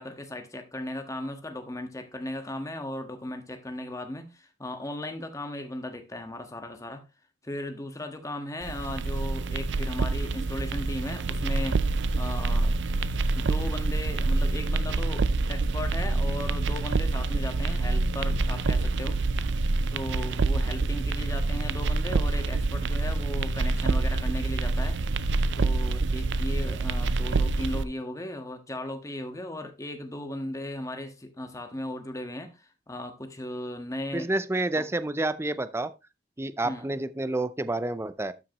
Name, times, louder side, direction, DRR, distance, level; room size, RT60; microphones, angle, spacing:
voice 1, 0.0-7.0 7.4-11.8 12.2-12.7 13.3-19.2 19.9-25.0 25.5-34.3 34.7-34.9 36.6-36.9, left 1 dB, 20° left, 1.5 m, -37 dB
sound 1, 8.6-27.8, right 3 dB, 80° right, 0.5 m, -26 dB
voice 2, 34.1-35.9 36.4-38.3, right 2 dB, 15° right, 0.5 m, -29 dB
12.5 x 5.8 x 3.0 m
head